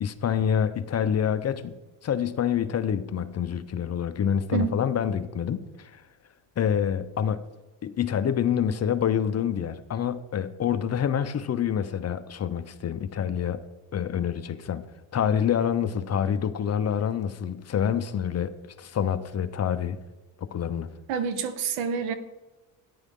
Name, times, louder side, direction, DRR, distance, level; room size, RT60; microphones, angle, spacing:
voice 1, 0.0-1.8 2.0-5.9 6.6-7.4 7.8-13.6 13.9-14.9 15.1-20.0 20.4-20.9, left 8 dB, 35° left, 0.7 m, -27 dB
voice 2, 21.1-22.2, right 6 dB, 80° right, 1.3 m, -27 dB
14.0 x 10.0 x 3.7 m
cardioid pair, 110°, 47 cm